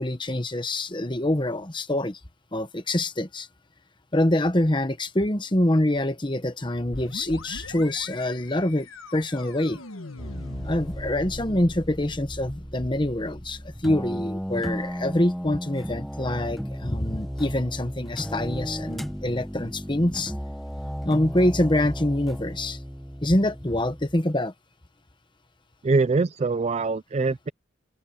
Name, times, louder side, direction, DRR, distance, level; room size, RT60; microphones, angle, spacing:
voice 1, 0.0-2.2 2.5-3.5 4.1-9.8 10.6-20.3 21.0-22.8 23.2-24.5, left 1 dB, 25° left, 1.2 m, -25 dB
sound 1, 6.9-16.5, left 2 dB, 85° left, 1.6 m, -43 dB
sound 2, 10.2-24.1, equal, ahead, 0.8 m, -35 dB
voice 2, 25.8-27.5, right 3 dB, 30° right, 0.4 m, -23 dB
open air
head